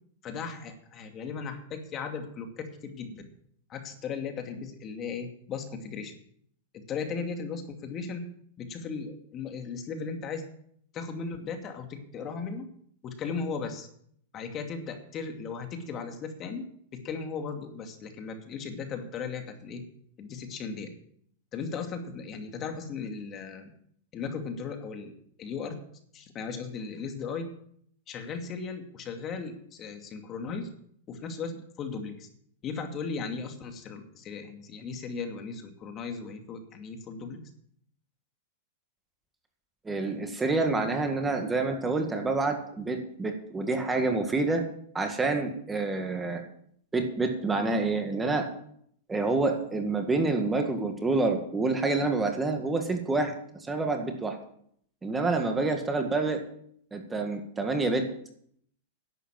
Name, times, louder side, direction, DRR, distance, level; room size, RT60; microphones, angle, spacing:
voice 1, 0.2-3.3 3.7-6.2 6.7-8.2 8.6-10.4 10.9-12.7 13.0-13.9 14.3-16.6 17.0-19.8 20.2-20.9 21.5-23.7 24.1-25.1 25.4-25.8 26.1-27.5 28.1-30.7 31.1-32.3 32.6-37.4, left 5 dB, 35° left, 5 dB, 2.5 m, -37 dB
voice 2, 39.9-44.7 44.9-46.4 46.9-48.5 49.1-53.3 53.6-54.4 55.0-56.4 56.9-58.1, right 3 dB, 15° right, 5 dB, 1.9 m, -27 dB
11.5 x 8.2 x 7.5 m, 0.66 s
hypercardioid pair, 120°, 0 cm